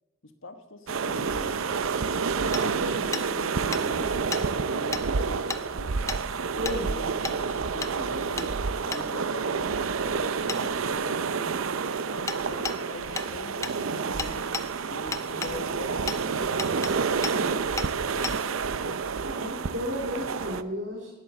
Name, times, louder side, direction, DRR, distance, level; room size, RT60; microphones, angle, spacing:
voice 1, 0.2-2.2 2.6-6.2 6.5-11.5 12.0-14.4 14.9-18.4, left 2 dB, 70° left, 8 dB, 1.3 m, -42 dB
sound 1, 0.9-20.6, right 5 dB, 80° right, 0.6 m, -29 dB
Hammer, 2.5-2.6 3.1-3.3 3.7-3.8 4.3-4.4 4.9-5.0 5.5-5.6 6.1-6.2 6.6-6.8 7.2-7.4 7.8-7.9 8.4-8.5 8.9-9.0 10.5-10.6 12.3-12.4 12.6-12.8 13.2-13.3 13.6-13.8 14.2-14.7 15.1-15.5 16.1-16.2 16.6-16.9 17.2-17.4 17.8-17.9 18.2-18.4, left 4 dB, 15° left, 0.5 m, -32 dB
voice 2, 6.6-6.9 13.9-14.4 19.2-21.1, equal, 65° right, -2 dB, 2.4 m, -34 dB
18.5 x 9.0 x 6.7 m, 1.2 s
head